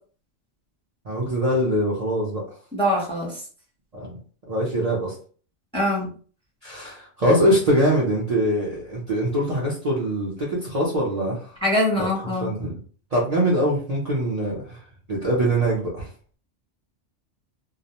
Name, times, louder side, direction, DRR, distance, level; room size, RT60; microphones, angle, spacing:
voice 1, 1.0-2.4 3.9-4.1 4.5-5.1 6.6-11.5 12.0-12.1 12.4-12.8 13.1-14.8 15.1-16.1, equal, 40° right, -6 dB, 0.6 m, -23 dB
voice 2, 2.7-3.4 5.7-6.1 11.6-12.5, left 1 dB, 5° left, -3 dB, 0.7 m, -23 dB
2.3 x 2.1 x 2.8 m, 0.42 s
omnidirectional pair, 1.3 m